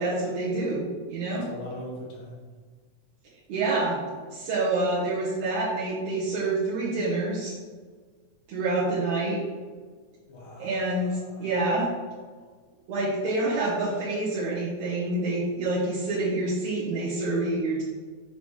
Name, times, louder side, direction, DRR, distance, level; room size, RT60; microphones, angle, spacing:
voice 1, 0.0-1.4 3.5-4.0 4.3-7.5 8.5-9.4 10.6-11.9 12.9-17.8, right 2 dB, 75° right, -8 dB, 2.4 m, -27 dB
voice 2, 1.3-2.4 10.3-11.6, left 1 dB, 55° left, -3 dB, 1.7 m, -41 dB
7.1 x 5.8 x 3.2 m, 1.5 s
omnidirectional pair, 3.5 m